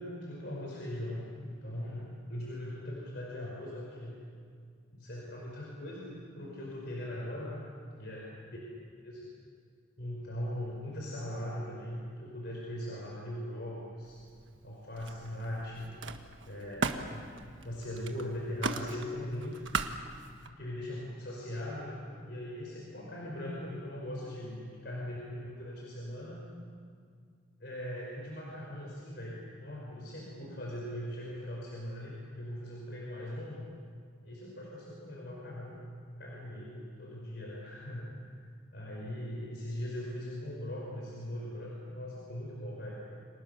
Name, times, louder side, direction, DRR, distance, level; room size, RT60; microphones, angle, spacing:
voice 1, 0.0-4.2 4.9-7.6 8.0-8.3 9.0-9.3 10.0-14.2 14.6-15.9 16.4-17.3 17.6-19.7 20.5-26.4 27.6-33.7 34.2-35.7 36.2-38.1 38.7-43.0, left 1 dB, 55° left, -3 dB, 5.0 m, -40 dB
Camera, 14.0-14.7 15.0-20.5, right 3 dB, 75° right, 1.4 m, -39 dB
30.0 x 26.0 x 6.8 m, 2.1 s
head